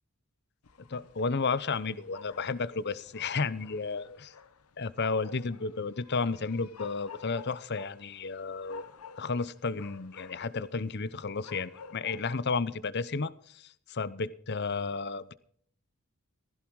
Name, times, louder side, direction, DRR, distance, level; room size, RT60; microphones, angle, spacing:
sound 1, 0.6-12.3, left 5 dB, 85° left, 0.9 m, -51 dB
voice 1, 0.9-4.0 4.8-8.9 9.2-15.3, left 4 dB, 50° left, 0.7 m, -32 dB
16.0 x 15.5 x 4.7 m
head